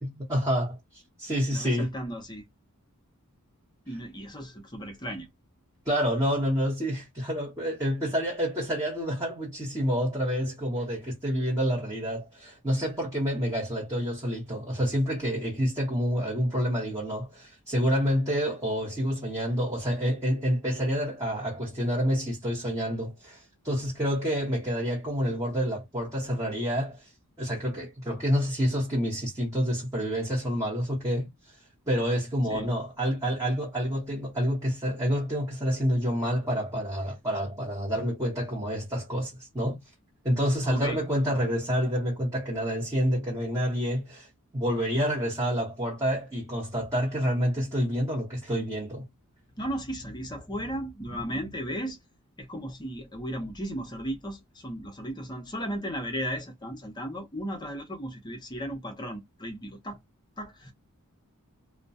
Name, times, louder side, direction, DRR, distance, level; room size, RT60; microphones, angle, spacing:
voice 1, 0.0-0.8 1.2-1.9 5.8-27.1 27.4-31.5 31.9-39.8 40.2-44.3 44.5-49.0, equal, 15° right, 0.9 m, -28 dB
voice 2, 1.5-2.4 3.9-5.3 32.5-32.7 40.6-41.0 49.6-52.0 52.4-60.0 60.4-60.7, equal, 20° left, 0.6 m, -35 dB
2.2 x 2.1 x 2.6 m
head